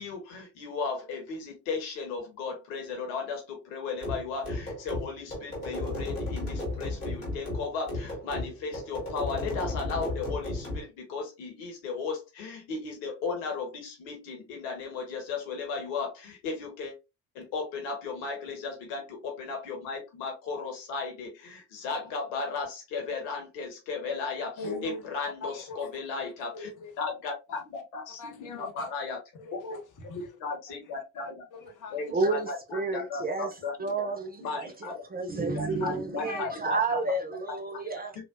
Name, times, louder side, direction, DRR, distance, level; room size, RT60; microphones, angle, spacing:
voice 1, 0.0-16.9 17.3-26.7 27.0-29.2 30.4-31.4 31.9-33.9 34.4-37.0 38.2-38.3, left 4 dB, 70° left, 1.1 m, -35 dB
sound 1, 4.0-10.9, left 2 dB, 90° left, 1.0 m, -34 dB
voice 2, 24.6-26.9 27.5-27.8 28.2-28.9 29.3-30.4 30.7-30.8 31.1-32.3 34.4-34.8 35.7-35.8 36.2-36.5, left 2 dB, 45° left, 0.9 m, -42 dB
voice 3, 32.1-33.5 33.8-38.1, right 3 dB, 20° right, 0.6 m, -30 dB
3.3 x 2.2 x 2.4 m
figure-of-eight pair, 45°, 43 cm